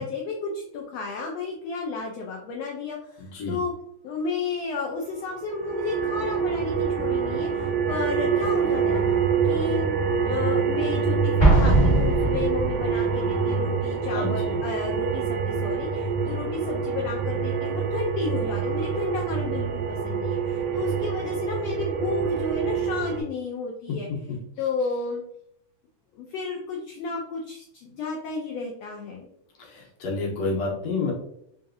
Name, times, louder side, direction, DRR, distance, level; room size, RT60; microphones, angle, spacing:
voice 1, 0.0-3.7 4.0-9.0 9.4-9.9 10.2-24.1 24.6-25.2 26.1-29.3, left 4 dB, 90° left, 0 dB, 1.4 m, -32 dB
sound 1, 5.3-23.2, right 6 dB, 80° right, 1.8 m, -26 dB
Explosion, 11.4-13.0, right 2 dB, 45° left, 0.5 m, -20 dB
voice 2, 14.1-14.6 24.1-24.2 29.6-31.1, left 3 dB, 70° left, -2 dB, 1.8 m, -29 dB
4.9 x 2.7 x 2.5 m, 0.74 s
omnidirectional pair, 3.6 m